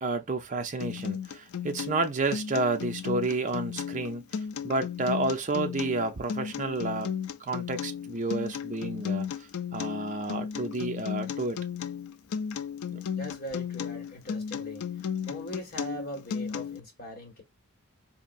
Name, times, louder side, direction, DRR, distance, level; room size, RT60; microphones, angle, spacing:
voice 1, 0.0-4.3 4.6-7.1 7.4-9.3 9.7-11.6 12.9-13.0, right 2 dB, 35° right, 0.6 m, -30 dB
Acoustic guitar, 0.8-16.8, left 7 dB, 75° left, 0.4 m, -34 dB
voice 2, 13.1-14.8 15.2-17.4, equal, 45° left, 1.6 m, -40 dB
4.3 x 2.7 x 2.4 m
head